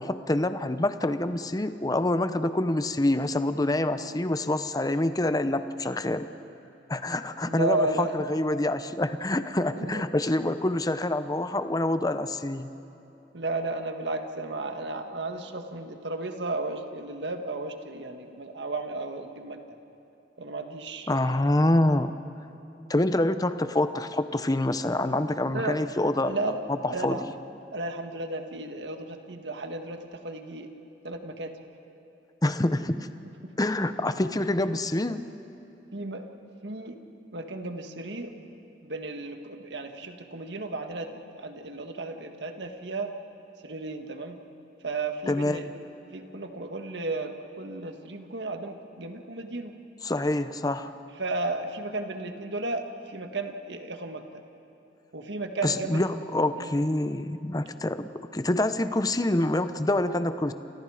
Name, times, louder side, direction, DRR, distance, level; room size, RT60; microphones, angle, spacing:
voice 1, 0.0-6.3 6.9-12.7 21.1-22.1 22.9-26.4 26.7-27.3 32.4-33.1 33.6-35.3 45.3-45.6 50.0-50.9 55.6-60.5, left 1 dB, 20° left, 11 dB, 0.8 m, -26 dB
voice 2, 7.4-8.3 9.6-10.0 13.3-19.6 20.4-21.1 25.5-25.8 26.2-27.2 27.7-30.7 31.0-31.5 33.3-33.5 35.9-36.3 36.6-37.0 37.3-38.5 38.8-43.1 43.6-44.4 44.8-45.7 46.1-49.7 51.2-54.2 55.1-56.0 56.5-56.7, right 2 dB, 70° right, 5 dB, 1.7 m, -34 dB
29.0 x 27.0 x 5.0 m, 3.0 s
head